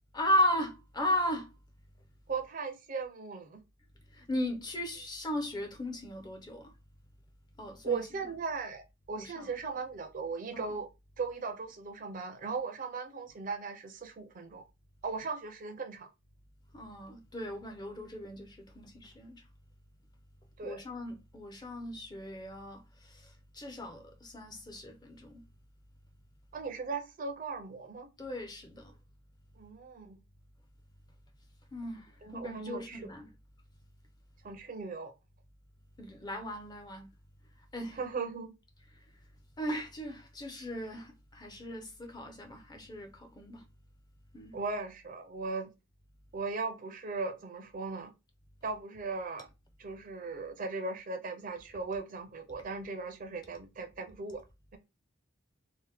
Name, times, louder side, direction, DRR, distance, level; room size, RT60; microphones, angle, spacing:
voice 1, 0.1-1.5 4.1-6.7 7.6-8.0 9.2-9.4 10.5-10.7 16.7-19.4 20.6-22.8 23.1-23.3 23.5-25.4 28.2-28.9 31.7-33.3 36.0-37.1 37.7-38.0 39.6-43.6 44.3-44.5, left 1 dB, 20° left, 0.4 m, -36 dB
voice 2, 2.3-3.6 7.8-10.9 11.2-14.6 15.0-16.1 20.6-20.8 26.5-28.1 29.6-30.2 32.2-33.1 34.4-35.1 37.9-38.5 44.5-45.7 46.3-48.1 48.6-49.5 49.8-54.4, right 4 dB, 40° right, 0.4 m, -38 dB
2.8 x 2.1 x 3.3 m
head